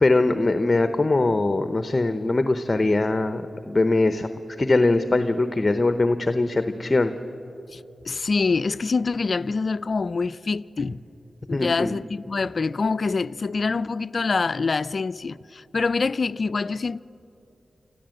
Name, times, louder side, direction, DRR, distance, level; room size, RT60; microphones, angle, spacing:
voice 1, 0.0-4.3 4.6-7.1 11.5-11.9, left 2 dB, 35° left, 0.9 m, -21 dB
voice 2, 8.1-11.0 11.5-17.0, left 4 dB, 60° left, 0.4 m, -25 dB
26.0 x 14.0 x 7.8 m
cardioid pair, 45°, 0 cm